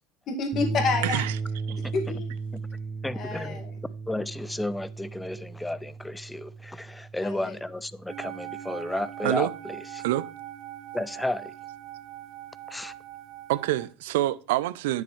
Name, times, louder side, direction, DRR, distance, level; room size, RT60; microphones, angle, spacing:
voice 1, 0.3-1.2 1.9-2.2 3.1-3.7 7.2-7.6, left 4 dB, 45° left, 2.1 m, -29 dB
sound 1, 0.5-9.0, right 4 dB, 20° right, 1.3 m, -36 dB
voice 2, 1.0-1.3 1.7-1.8 9.2-9.5 10.0-10.3 13.5-15.0, right 15 dB, 85° right, 0.5 m, -26 dB
voice 3, 3.0-3.6 4.1-10.0 10.9-11.4 12.7-12.9, left 1 dB, 5° left, 0.4 m, -33 dB
sound 2, 8.1-13.9, right 12 dB, 50° right, 0.9 m, -41 dB
10.0 x 6.4 x 3.2 m
supercardioid pair, 120°, 0 cm